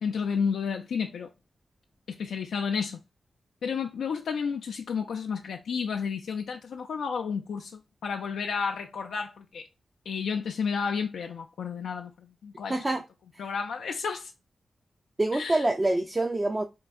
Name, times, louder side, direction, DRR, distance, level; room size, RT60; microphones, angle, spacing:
voice 1, 0.0-1.3 2.1-3.0 3.6-9.7 10.1-12.8 13.4-14.3 15.3-15.7, left 6 dB, 85° left, 0.3 m, -31 dB
voice 2, 12.7-13.0 15.2-16.6, right 2 dB, 30° right, 0.5 m, -26 dB
4.4 x 2.2 x 2.4 m
supercardioid pair, 40°, 0 cm